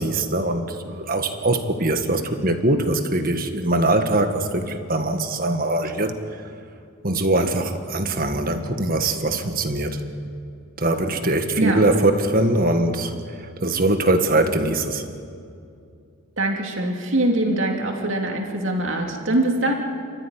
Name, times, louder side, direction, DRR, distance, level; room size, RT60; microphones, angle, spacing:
voice 1, 0.0-6.2 7.0-10.0 10.8-13.1 13.6-15.0, right 2 dB, 40° right, 7 dB, 1.7 m, -22 dB
voice 2, 16.4-19.7, right 1 dB, 55° right, 2 dB, 2.9 m, -23 dB
29.5 x 14.0 x 10.0 m, 2.4 s
head